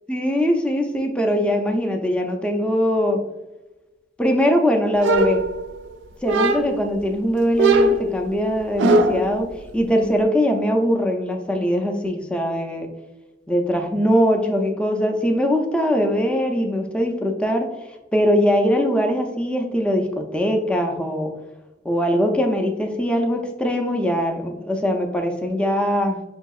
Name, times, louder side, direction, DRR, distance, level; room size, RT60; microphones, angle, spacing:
voice 1, 0.1-3.2 4.2-5.4 6.2-12.9 13.5-17.7 18.1-21.3 21.8-26.2, equal, 5° left, 2 dB, 0.4 m, -21 dB
sound 1, 5.0-5.9 6.3-6.9 7.6-9.3, right 2 dB, 70° right, 0.4 m, -20 dB
5.8 x 2.7 x 2.3 m, 1.0 s
head